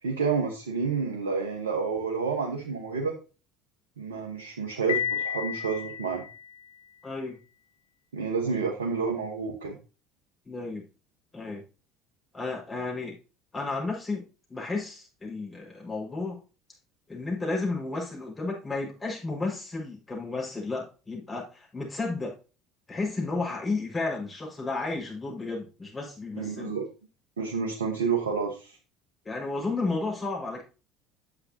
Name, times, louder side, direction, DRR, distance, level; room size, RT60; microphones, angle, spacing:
voice 1, 0.0-3.2 4.0-6.2 8.1-9.7 26.4-26.8 27.4-28.8, right 5 dB, 80° right, 1 dB, 1.3 m, -29 dB
Piano, 4.9-6.8, left 9 dB, 80° left, 0.5 m, -32 dB
voice 2, 7.0-7.4 10.4-10.8 11.3-11.6 12.3-13.1 13.5-14.2 14.5-16.4 17.1-22.4 22.9-26.7 29.2-30.6, left 3 dB, 20° left, -1 dB, 5.2 m, -32 dB
9.5 x 7.6 x 2.8 m, 0.33 s
figure-of-eight pair, 65°, 0 cm